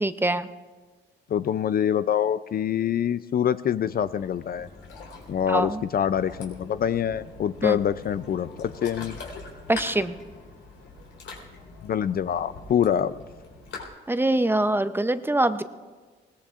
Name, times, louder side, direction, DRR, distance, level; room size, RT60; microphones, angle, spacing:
voice 1, 0.0-0.5 5.5-5.8 7.6-7.8 9.7-10.1 14.1-15.6, right 1 dB, 10° right, 11 dB, 0.7 m, -24 dB
voice 2, 1.3-4.7 5.3-9.2 11.8-13.2, left 9 dB, 50° left, 14 dB, 0.5 m, -25 dB
Ocean, 3.8-13.8, left 3 dB, 75° left, 4.1 m, -43 dB
20.5 x 19.0 x 2.5 m, 1.4 s
cardioid pair, 90°, 20 cm